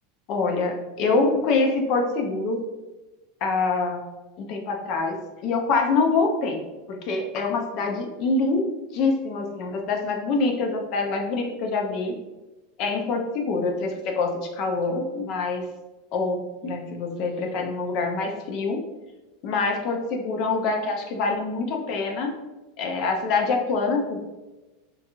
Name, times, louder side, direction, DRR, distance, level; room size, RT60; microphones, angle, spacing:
voice 1, 0.3-2.6 3.4-4.0 4.5-5.2 5.4-6.6 6.9-8.7 8.9-12.1 12.8-15.6 16.1-18.8 19.4-22.3 22.8-24.2, left 3 dB, 40° left, 2 dB, 0.4 m, -25 dB
3.7 x 2.3 x 2.9 m, 1.1 s
supercardioid pair, 160°, 0 cm